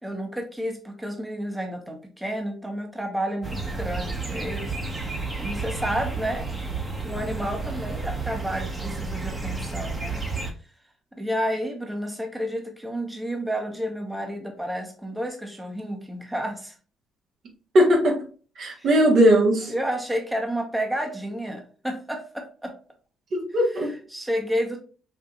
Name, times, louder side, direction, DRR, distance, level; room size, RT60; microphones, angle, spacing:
voice 1, 0.0-6.5 7.0-10.2 11.1-16.8 18.8-19.0 19.6-22.7 23.7-24.8, equal, 5° right, 3 dB, 1.1 m, -31 dB
sound 1, 3.4-10.5, right 3 dB, 25° right, 1.2 m, -31 dB
voice 2, 17.7-18.2 18.6-19.7 23.3-23.9, equal, 60° right, 0 dB, 1.5 m, -19 dB
5.4 x 2.7 x 2.4 m, 0.40 s
supercardioid pair, 70°, 0 cm